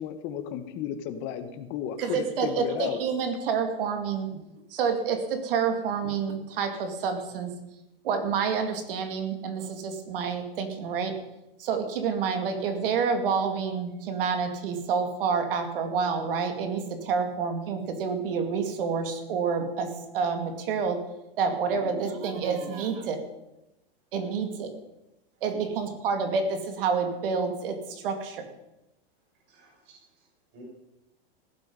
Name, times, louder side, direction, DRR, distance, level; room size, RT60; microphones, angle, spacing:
voice 1, 0.0-3.0, left 9 dB, 40° left, 9 dB, 1.5 m, -33 dB
voice 2, 2.0-4.3 4.7-7.6 8.0-11.2 11.6-21.1 21.4-23.2 24.1-24.7 25.4-28.5, right 5 dB, 70° right, 6 dB, 2.6 m, -28 dB
voice 3, 21.7-22.8 29.5-30.3 30.5-30.6, right 4 dB, 35° right, -3 dB, 6.5 m, -44 dB
15.5 x 11.5 x 5.5 m, 0.93 s
supercardioid pair, 150°, 29 cm